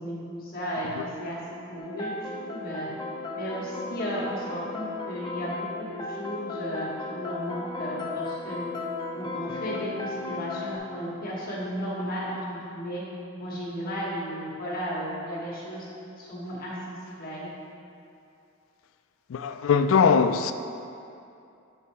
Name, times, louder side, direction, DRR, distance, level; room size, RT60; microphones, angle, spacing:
voice 1, 0.0-1.4 1.7-2.1 2.4-2.9 3.3-8.7 9.1-13.0 13.4-15.9 16.2-17.5, equal, 50° left, 1.4 m, -34 dB
sound 1, 1.8-10.8, left 3 dB, 20° left, 0.6 m, -35 dB
voice 2, 19.3-20.5, left 6 dB, 70° left, 0.3 m, -21 dB
7.0 x 4.5 x 4.3 m
head